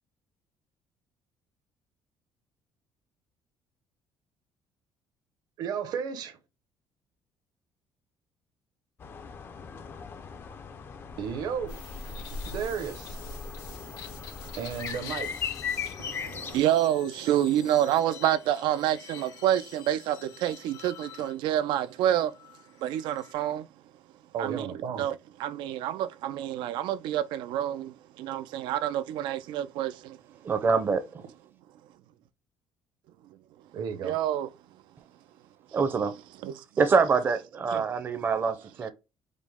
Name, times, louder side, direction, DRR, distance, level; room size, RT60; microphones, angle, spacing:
voice 1, 5.6-6.4 11.2-11.8 12.0-12.2 12.5-13.2 14.6-15.4 24.3-25.1 33.7-34.2, right 7 dB, 60° right, 0.8 m, -33 dB
sound 1, 9.0-16.6, left 6 dB, 30° left, 0.5 m, -38 dB
sound 2, 11.7-23.3, left 8 dB, 85° left, 2.1 m, -47 dB
voice 2, 16.0-22.3 22.8-23.7 24.4-24.7 25.0-30.2 34.0-34.5 36.4-36.6 37.7-37.8, right 11 dB, 85° right, 0.5 m, -28 dB
voice 3, 30.4-31.2 35.7-36.1 36.8-38.9, right 5 dB, 25° right, 0.6 m, -25 dB
5.1 x 2.1 x 3.5 m
cardioid pair, 170°, 8 cm